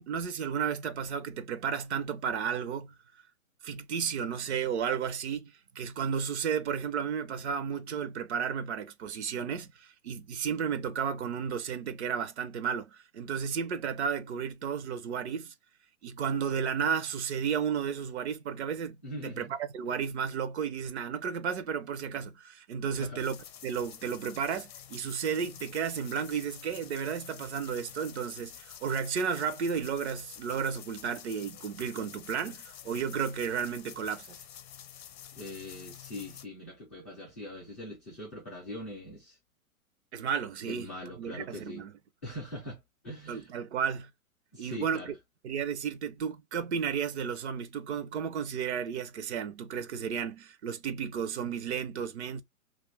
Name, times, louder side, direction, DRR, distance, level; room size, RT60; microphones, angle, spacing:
voice 1, 0.0-2.9 3.6-15.5 16.0-19.0 19.2-19.5 19.7-23.4 23.6-34.4 40.1-40.9 41.2-41.9 43.3-44.1 44.6-45.1 45.4-52.4, right 7 dB, 50° right, 0.6 m, -33 dB
voice 2, 19.0-19.5 22.9-23.2 35.3-39.4 40.6-41.9 42.2-43.5 44.5-45.2, left 1 dB, 10° left, 0.3 m, -42 dB
sound 1, 23.2-36.4, left 10 dB, 45° left, 0.7 m, -48 dB
2.5 x 2.4 x 3.2 m
hypercardioid pair, 125°, 43 cm